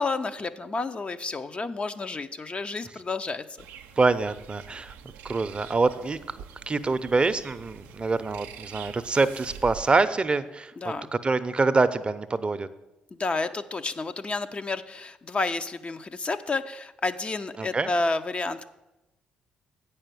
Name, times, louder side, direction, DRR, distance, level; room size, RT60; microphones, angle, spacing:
voice 1, 0.0-3.4 10.8-11.1 13.1-18.7, left 3 dB, 35° left, 9 dB, 0.6 m, -30 dB
sound 1, 3.6-10.0, right 8 dB, 85° right, 0.5 m, -45 dB
voice 2, 4.0-4.9 5.2-6.4 6.7-10.9 11.2-12.7 17.6-17.9, right 3 dB, 30° right, 12 dB, 0.6 m, -25 dB
8.7 x 5.6 x 6.8 m, 0.98 s
hypercardioid pair, 50°, 3 cm